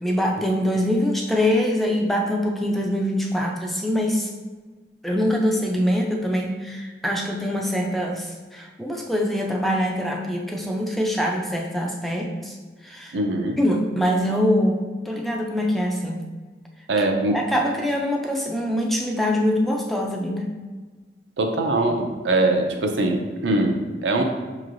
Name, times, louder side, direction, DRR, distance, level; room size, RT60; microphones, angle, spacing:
voice 1, 0.0-4.3 5.0-12.5 12.8-13.2 13.6-16.2 17.0-20.5, equal, ahead, 0 dB, 0.3 m, -24 dB
voice 2, 13.1-13.6 16.9-17.4 21.4-24.2, right 2 dB, 90° right, 3 dB, 0.6 m, -22 dB
5.4 x 3.0 x 2.5 m, 1.4 s
head